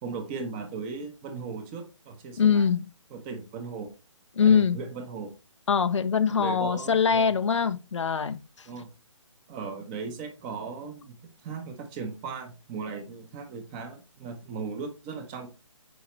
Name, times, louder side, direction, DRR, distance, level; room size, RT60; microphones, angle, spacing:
voice 1, 0.0-2.7 3.1-3.9 4.4-5.3 6.3-7.3 8.7-8.9 9.5-15.5, right 5 dB, 20° right, 1.2 m, -37 dB
voice 2, 2.4-2.9 4.4-4.8 5.7-8.7, left 6 dB, 65° left, 0.8 m, -23 dB
8.0 x 4.8 x 3.2 m
figure-of-eight pair, 145°, 16 cm